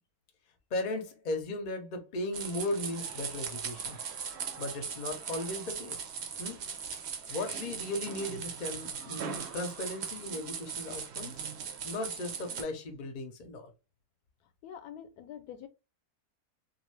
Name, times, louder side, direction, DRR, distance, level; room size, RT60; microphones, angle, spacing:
voice 1, 0.7-4.0 4.6-6.0 6.4-6.6 7.3-11.5 11.8-13.7, left 2 dB, 50° left, 0.6 m, -36 dB
sound 1, 2.3-12.6, right 7 dB, 60° right, 0.7 m, -39 dB
voice 2, 14.6-15.7, left 9 dB, 85° left, 1.1 m, -45 dB
2.5 x 2.3 x 3.1 m
omnidirectional pair, 1.6 m